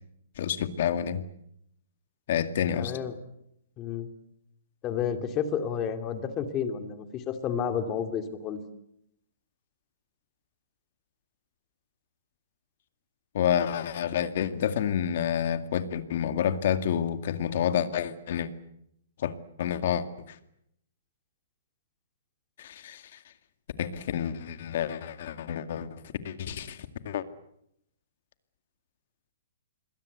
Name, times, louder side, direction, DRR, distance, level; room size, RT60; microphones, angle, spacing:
voice 1, 0.4-1.2 2.3-2.9 13.3-18.5 19.2-20.4 22.6-23.0 23.8-26.8 27.1-27.2, left 9 dB, 50° left, 10 dB, 2.1 m, -29 dB
voice 2, 2.7-3.2 3.8-4.1 4.8-8.6, left 7 dB, 20° left, 7 dB, 2.6 m, -31 dB
27.0 x 22.0 x 8.1 m, 0.76 s
hypercardioid pair, 160°, 0 cm